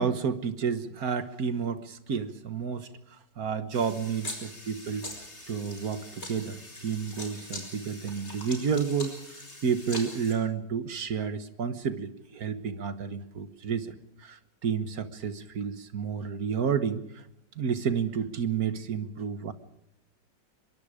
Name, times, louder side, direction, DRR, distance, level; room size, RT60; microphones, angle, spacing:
voice 1, 0.0-5.1 5.5-14.0 14.2-17.2 17.6-19.5, right 6 dB, 55° right, 11 dB, 1.7 m, -31 dB
sound 1, 3.7-10.3, left 1 dB, 35° left, 5.0 m, -42 dB
24.5 x 22.5 x 5.0 m, 0.81 s
omnidirectional pair, 2.0 m